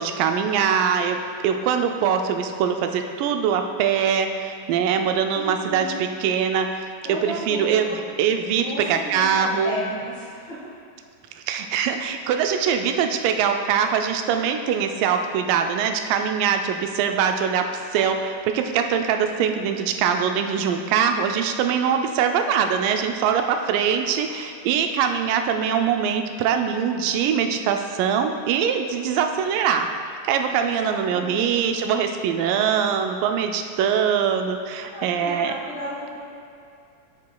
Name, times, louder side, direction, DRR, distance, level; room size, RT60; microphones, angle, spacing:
voice 1, 0.0-9.8 11.4-29.9 30.2-35.5, right 7 dB, 90° right, 6 dB, 2.2 m, -23 dB
voice 2, 5.3-6.0 7.0-8.0 8.6-10.7 30.5-31.5 34.9-36.2, equal, 55° left, -8 dB, 1.5 m, -34 dB
8.4 x 7.5 x 2.3 m, 2.5 s
omnidirectional pair, 3.8 m